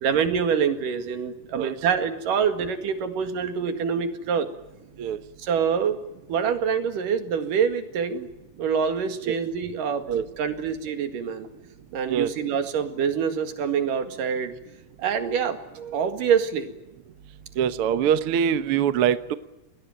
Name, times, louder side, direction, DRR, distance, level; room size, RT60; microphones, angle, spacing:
voice 1, 0.0-4.5 5.4-6.0 6.3-8.3 8.6-10.1 10.4-11.5 11.9-14.5 15.0-16.7, right 7 dB, 80° right, 8 dB, 3.6 m, -25 dB
voice 2, 17.6-19.4, right 8 dB, 60° right, 11 dB, 1.6 m, -23 dB
28.5 x 20.0 x 9.1 m, 0.94 s
omnidirectional pair, 3.8 m